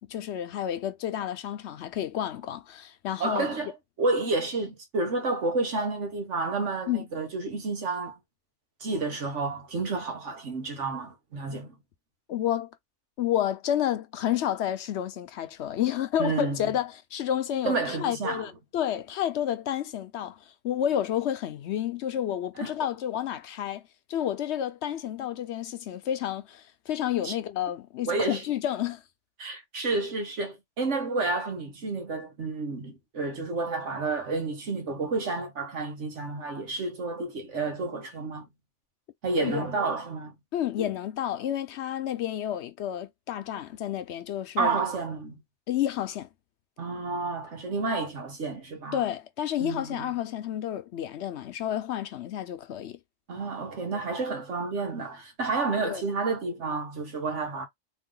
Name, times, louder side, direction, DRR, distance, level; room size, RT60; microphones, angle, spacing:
voice 1, 0.1-3.6 6.9-7.1 12.3-12.7 13.2-23.8 24.1-29.0 39.4-39.7 40.5-44.8 45.7-46.3 48.9-53.0 55.8-56.0, left 11 dB, 70° left, 0.9 m, -30 dB
voice 2, 3.2-8.2 8.8-11.7 16.2-16.6 17.6-18.5 22.6-22.7 27.2-27.3 28.1-28.4 29.4-38.5 39.2-40.3 40.8-40.9 44.6-45.3 46.8-49.0 49.6-50.1 53.3-57.7, right 3 dB, 85° right, 1.6 m, -30 dB
3.4 x 2.6 x 3.8 m
omnidirectional pair, 1.2 m